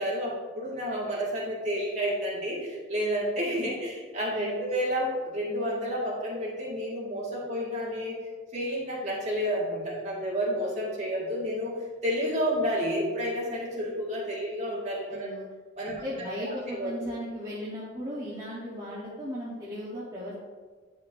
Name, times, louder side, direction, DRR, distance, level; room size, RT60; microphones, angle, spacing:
voice 1, 0.0-8.2 8.5-11.7 12.0-15.3 15.8-16.9, equal, 40° right, -6 dB, 1.9 m, -30 dB
voice 2, 4.3-4.7 15.1-15.5 15.9-20.4, equal, 20° right, -8 dB, 1.1 m, -37 dB
9.4 x 5.6 x 2.7 m, 1.4 s
head